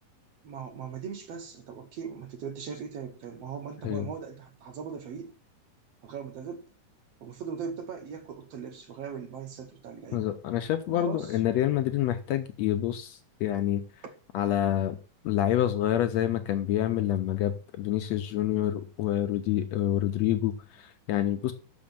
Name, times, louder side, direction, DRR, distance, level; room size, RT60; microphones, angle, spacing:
voice 1, 0.4-5.3 6.0-6.7 7.2-10.3 10.9-11.4 14.0-14.1, right 6 dB, 65° right, 1.8 m, -39 dB
voice 2, 10.1-13.8 14.3-15.0 15.2-21.5, left 12 dB, 75° left, 1.7 m, -27 dB
6.3 x 6.1 x 7.1 m
omnidirectional pair, 3.6 m